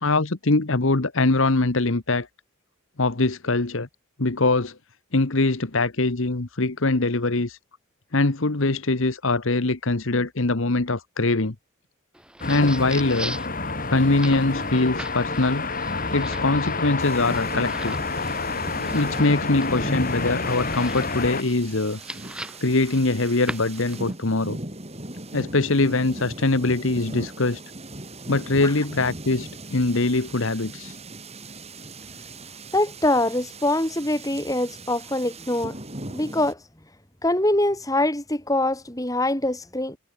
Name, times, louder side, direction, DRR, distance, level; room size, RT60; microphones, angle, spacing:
voice 1, 0.0-2.3 3.0-3.9 4.2-4.8 5.1-7.6 8.1-11.5 12.5-13.4 13.9-15.6 16.1-18.0 18.9-22.0 22.6-24.6 25.3-27.6 28.3-31.0, left 2 dB, 60° left, 1.3 m, -22 dB
sound 1, 12.1-24.1, right 1 dB, 5° right, 6.8 m, -41 dB
sound 2, 12.4-21.4, left 3 dB, 40° left, 4.4 m, -28 dB
sound 3, 17.0-36.5, right 2 dB, 30° right, 6.1 m, -39 dB
voice 2, 32.7-35.8 36.1-36.6 37.2-40.0, left 1 dB, 15° left, 3.0 m, -24 dB
head